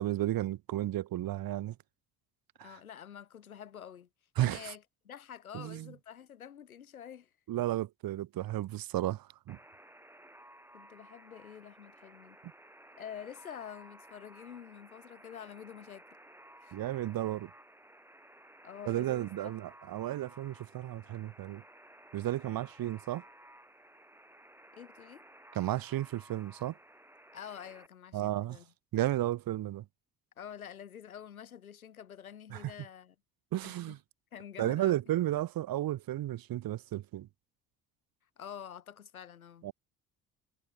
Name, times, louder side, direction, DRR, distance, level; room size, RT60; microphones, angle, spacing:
voice 1, 0.0-1.8 2.6-2.7 4.4-4.7 5.5-5.9 7.5-9.6 16.7-17.5 18.9-21.6 22.1-23.2 25.5-26.7 28.1-28.6 28.9-29.8 32.5-32.6 33.5-34.0 34.6-37.3 39.6-39.7, right 14 dB, 55° right, 2.1 m, -33 dB
voice 2, 2.6-4.1 4.4-7.3 10.7-12.4 13.0-16.1 16.6-16.8 18.6-19.6 22.8-22.9 24.7-25.3 27.3-28.7 30.4-33.2 33.6-34.0 34.3-35.0 38.4-39.7, left 9 dB, 90° left, 3.4 m, -47 dB
Alarm, 9.5-27.9, right 1 dB, 5° right, 5.6 m, -56 dB
hypercardioid pair, 55°, 42 cm